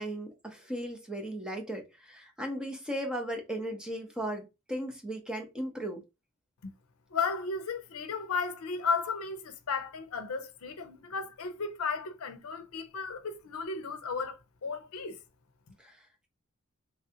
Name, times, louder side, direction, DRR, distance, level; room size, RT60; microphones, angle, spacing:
voice 1, 0.0-6.0 15.8-16.0, right 1 dB, 5° right, 0.7 m, -36 dB
voice 2, 7.1-15.2, left 5 dB, 85° left, 0.6 m, -34 dB
3.3 x 2.4 x 2.7 m
head